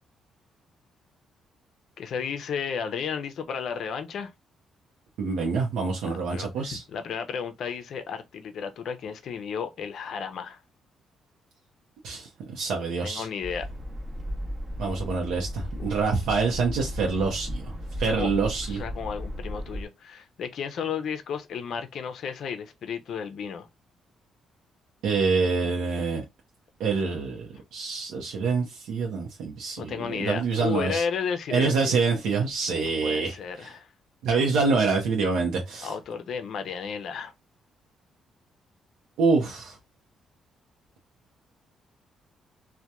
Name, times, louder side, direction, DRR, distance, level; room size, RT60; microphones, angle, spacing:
voice 1, 2.0-4.3 6.2-10.6 13.0-13.7 15.8-15.9 18.0-18.3 18.6-23.7 29.8-32.0 32.8-33.9 35.8-37.3, left 6 dB, 65° left, 0.4 m, -33 dB
voice 2, 5.2-6.8 12.0-13.3 14.8-17.7 18.0-18.8 25.0-26.2 26.8-31.0 31.5-33.7 34.2-35.9 39.2-39.8, right 4 dB, 85° right, 0.6 m, -26 dB
sound 1, 13.4-19.8, equal, 25° right, 0.7 m, -35 dB
2.8 x 2.1 x 2.2 m
cardioid pair, 90°, 0 cm